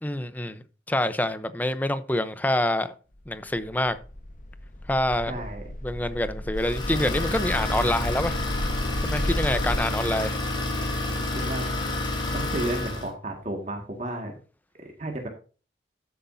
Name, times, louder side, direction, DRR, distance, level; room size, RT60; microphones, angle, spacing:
voice 1, 0.0-2.9 3.3-4.0 4.9-5.3 5.8-8.3 9.0-10.4, left 1 dB, 10° left, 0.7 m, -26 dB
sound 1, 3.2-9.8, left 1 dB, 45° left, 1.1 m, -33 dB
voice 2, 5.3-5.6 11.1-11.7 12.3-14.4 15.0-15.3, right 1 dB, 40° right, 1.9 m, -32 dB
Idling, 6.6-13.1, left 2 dB, 25° left, 3.4 m, -29 dB
13.5 x 8.3 x 2.7 m
head